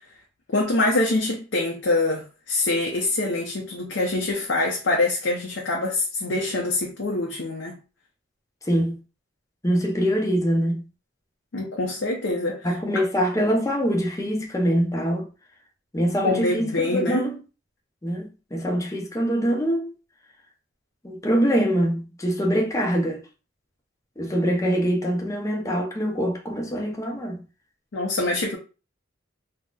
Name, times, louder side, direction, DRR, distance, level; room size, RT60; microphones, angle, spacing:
voice 1, 0.5-7.8 11.5-12.7 16.2-17.3 27.9-28.6, left 2 dB, 80° left, 0.6 m, -25 dB
voice 2, 8.7-9.0 9.6-10.9 12.6-15.3 15.9-17.4 18.0-19.9 21.0-23.2 24.2-27.4, equal, 15° left, 0.6 m, -24 dB
3.9 x 2.1 x 2.3 m
head